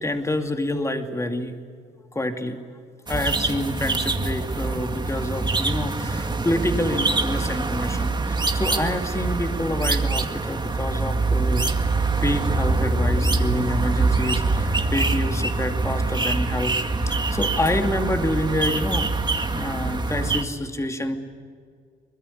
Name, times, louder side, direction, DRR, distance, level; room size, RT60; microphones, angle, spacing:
voice 1, 0.0-1.5 2.1-2.6 3.1-11.7 12.2-16.7 17.1-19.1 19.5-21.2, left 1 dB, 15° left, 5 dB, 2.5 m, -27 dB
sound 1, 3.1-20.4, right 3 dB, 20° right, 2.1 m, -24 dB
24.0 x 21.0 x 9.8 m, 2.1 s
cardioid pair, 90°, 20 cm